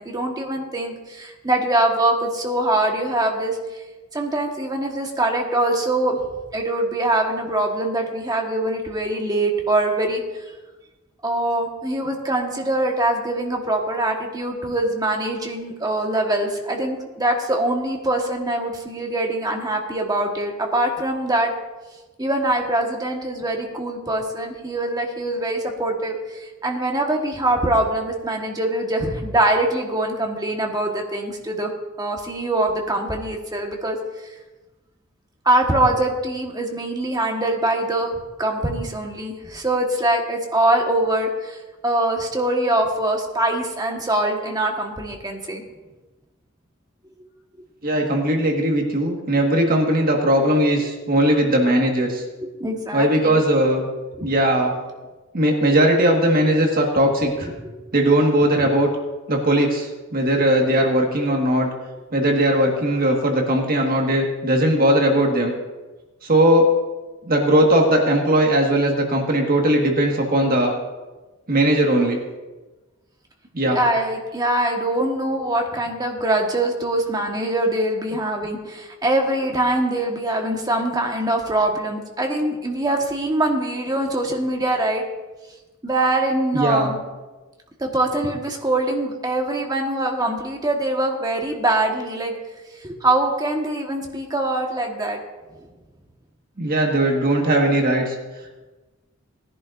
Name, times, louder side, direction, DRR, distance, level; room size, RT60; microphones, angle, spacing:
voice 1, 0.0-3.8 4.1-6.2 6.5-10.2 11.2-21.5 22.2-31.7 32.0-34.0 35.4-41.6 41.8-45.6 52.1-53.4 54.2-54.3 57.4-57.8 60.4-60.5 73.7-85.0 85.8-87.0 87.8-92.3 92.8-95.2, right 1 dB, 20° right, 1 dB, 1.4 m, -23 dB
voice 2, 47.8-52.2 52.9-53.9 54.2-54.7 55.3-57.5 57.9-58.9 59.3-61.7 62.1-65.5 66.2-66.7 67.2-70.7 71.5-72.2 73.5-73.8 86.5-86.9 96.6-98.1, right 1 dB, 45° right, 1 dB, 1.7 m, -19 dB
19.5 x 10.5 x 2.6 m, 1.2 s
head